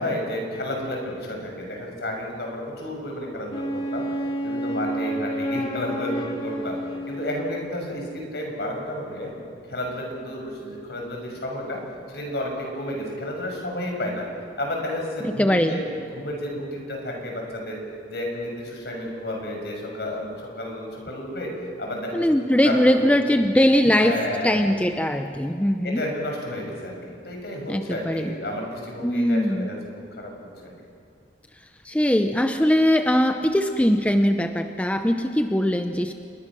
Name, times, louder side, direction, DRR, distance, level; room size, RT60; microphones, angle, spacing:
voice 1, 0.0-4.0 4.4-6.8 7.1-9.3 9.7-11.8 12.1-14.3 14.6-15.9 16.1-17.8 18.1-21.5 21.8-22.3 22.6-23.1 24.0-24.7 25.8-29.8 30.2-30.3, left 1 dB, 65° left, 1 dB, 6.3 m, -31 dB
Wind instrument woodwind instrument, 3.5-7.9, right 1 dB, 30° left, 2.9 m, -30 dB
voice 2, 15.4-15.8 22.1-26.0 27.7-28.3 29.0-29.7 31.8-36.1, equal, 10° left, 6 dB, 0.7 m, -21 dB
27.5 x 22.5 x 6.2 m, 2.3 s
head